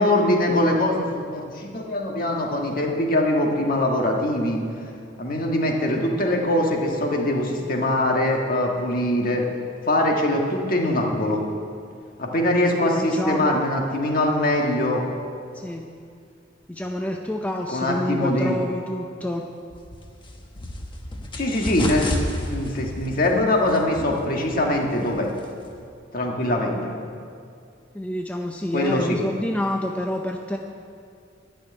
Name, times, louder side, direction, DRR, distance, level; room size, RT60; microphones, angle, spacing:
voice 1, 0.0-4.6 5.2-9.5 9.8-11.4 12.2-15.0 17.7-18.6 21.3-22.1 22.5-25.3 26.1-26.9 28.7-29.2, left 1 dB, 50° left, 0 dB, 1.6 m, -22 dB
voice 2, 12.8-13.6 15.5-15.9 16.7-19.5 27.9-30.6, left 1 dB, 5° left, 2 dB, 0.5 m, -28 dB
sound 1, 19.7-25.9, left 1 dB, 25° left, 1.1 m, -32 dB
12.0 x 6.5 x 9.4 m, 2.4 s
head